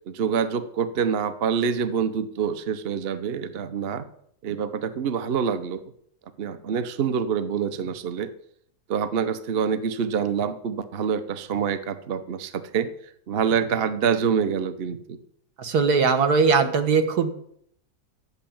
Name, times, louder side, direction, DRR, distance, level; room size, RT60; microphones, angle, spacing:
voice 1, 0.1-4.1 4.4-5.8 6.4-8.3 8.9-12.9 13.3-15.2, right 7 dB, 45° right, 12 dB, 0.9 m, -26 dB
voice 2, 15.6-17.3, right 5 dB, 75° right, 9 dB, 1.9 m, -20 dB
11.0 x 8.6 x 8.7 m, 0.68 s
omnidirectional pair, 1.7 m